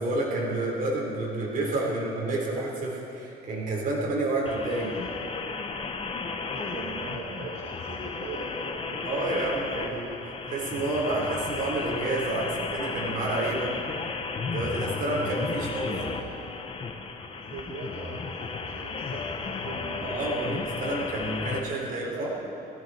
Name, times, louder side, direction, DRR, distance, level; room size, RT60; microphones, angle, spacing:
voice 1, 0.0-4.9 9.0-10.1 10.5-13.7 14.4-15.9 20.0-22.3, right 2 dB, 55° right, -3 dB, 4.6 m, -29 dB
sound 1, 4.5-21.6, left 4 dB, 35° left, 1.2 m, -34 dB
voice 2, 6.5-10.2 10.5-10.6 15.9-16.2 17.4-20.6 21.5-22.4, right 3 dB, 75° right, -4 dB, 2.2 m, -41 dB
18.5 x 15.0 x 4.6 m, 2.8 s
cardioid pair, 110°, 17 cm